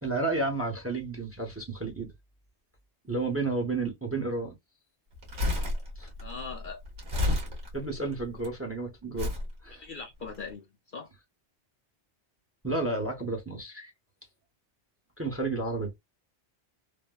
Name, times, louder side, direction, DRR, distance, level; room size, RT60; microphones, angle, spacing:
voice 1, 0.0-2.1 3.1-4.5 6.0-6.1 7.7-9.3 9.6-9.9 12.6-13.9 15.2-15.9, right 3 dB, 15° right, 0.7 m, -31 dB
Crumpling crinkling, 5.1-8.5 9.2-9.5 10.2-10.4, left 2 dB, 75° right, 1.7 m, -31 dB
voice 2, 6.2-6.8 9.7-11.1, left 4 dB, 55° left, 0.7 m, -41 dB
3.4 x 2.1 x 2.2 m
omnidirectional pair, 1.2 m